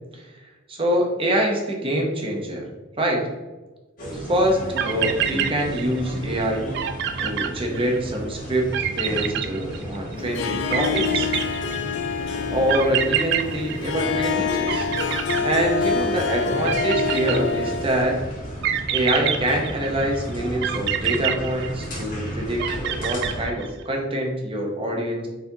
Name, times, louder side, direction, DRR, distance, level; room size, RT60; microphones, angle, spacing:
voice 1, 0.7-2.6 3.0-3.3 4.1-6.7 7.2-11.3 12.5-14.9 15.4-18.2 18.9-25.3, right 1 dB, 25° right, 0 dB, 0.7 m, -25 dB
sound 1, 4.0-23.5, right 1 dB, 45° left, 1.2 m, -34 dB
sound 2, 4.5-4.6 4.8-6.1 6.4-6.5 6.7-8.2 8.7-10.1 10.7-12.0 12.7-14.4 14.7-16.1 16.6-17.9 18.6-20.1 20.6-22.1 22.6-23.8, right 10 dB, 55° right, 0.4 m, -26 dB
Harp, 10.2-18.1, left 6 dB, 60° left, 0.4 m, -26 dB
4.5 x 4.2 x 2.7 m, 1.2 s
head